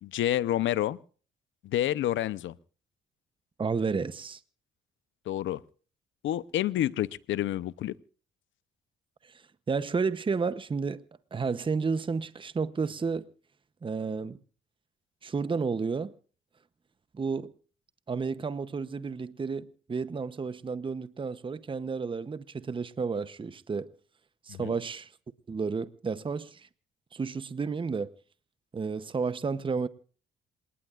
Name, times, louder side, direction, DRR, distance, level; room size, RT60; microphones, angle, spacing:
voice 1, 0.0-1.0 1.6-2.5 5.3-5.6 6.2-7.9 24.5-24.7, left 12 dB, 75° left, 0.8 m, -29 dB
voice 2, 3.6-4.4 9.2-11.0 11.3-13.3 13.8-14.4 15.2-16.1 17.1-17.5 18.1-23.9 24.5-25.1 25.5-26.7 27.1-28.1 28.7-29.9, right 5 dB, 25° right, 0.8 m, -31 dB
27.5 x 19.0 x 2.5 m
cardioid pair, 90°, 20 cm